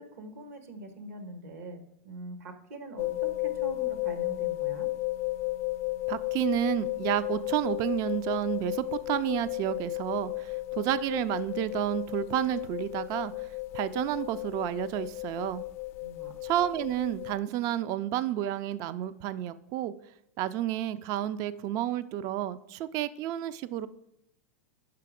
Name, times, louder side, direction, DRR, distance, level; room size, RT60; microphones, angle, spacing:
voice 1, 0.0-4.9 16.0-16.3, right 2 dB, 70° right, 8 dB, 1.2 m, -43 dB
sound 1, 3.0-17.3, left 19 dB, 55° left, 0.4 m, -34 dB
voice 2, 6.1-13.3 13.7-15.6 16.4-19.9 20.4-23.9, right 12 dB, 45° right, 15 dB, 0.3 m, -30 dB
5.7 x 5.1 x 4.9 m, 0.79 s
hypercardioid pair, 105°, 8 cm